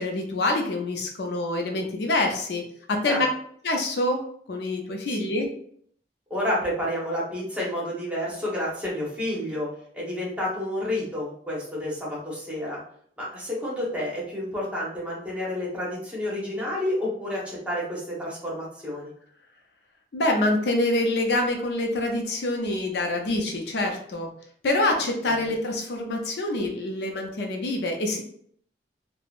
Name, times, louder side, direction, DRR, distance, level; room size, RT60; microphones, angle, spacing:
voice 1, 0.0-2.6 2.9-3.3 3.6-4.2 4.5-5.5 20.1-24.3 24.6-28.2, left 2 dB, 65° left, 2 dB, 0.5 m, -26 dB
voice 2, 5.1-5.4 6.3-9.7 9.9-12.8 13.2-19.1 25.2-25.5, left 1 dB, 5° right, -5 dB, 0.9 m, -30 dB
3.6 x 2.0 x 2.4 m, 0.63 s
head